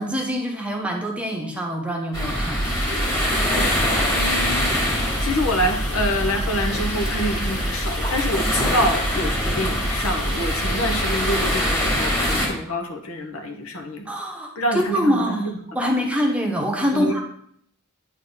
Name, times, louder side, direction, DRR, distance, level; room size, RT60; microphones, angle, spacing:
voice 1, 0.0-2.7 14.1-15.5 15.7-17.2, equal, 5° right, 1 dB, 1.0 m, -24 dB
sound 1, 2.1-12.5, equal, 15° left, 2.3 m, -23 dB
sound 2, 2.6-11.7, left 2 dB, 35° left, 1.5 m, -38 dB
voice 2, 4.1-4.7 5.2-14.1 14.5-15.2 15.8-15.9 16.9-17.2, equal, 75° left, 4 dB, 1.2 m, -26 dB
9.3 x 3.8 x 3.9 m, 0.65 s
head